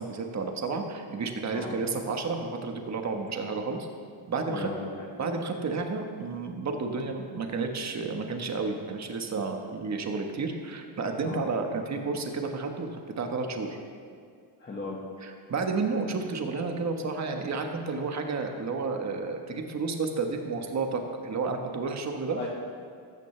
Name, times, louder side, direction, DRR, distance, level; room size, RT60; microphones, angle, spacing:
voice 1, 0.0-3.9 4.3-4.7 5.2-13.8 15.2-22.5, right 4 dB, 35° right, 4 dB, 1.3 m, -31 dB
voice 2, 4.5-5.1 11.2-11.4 14.6-15.0 22.4-22.5, left 3 dB, 20° left, -4 dB, 1.6 m, -36 dB
14.0 x 13.5 x 3.3 m, 2.2 s
cardioid pair, 130°, 49 cm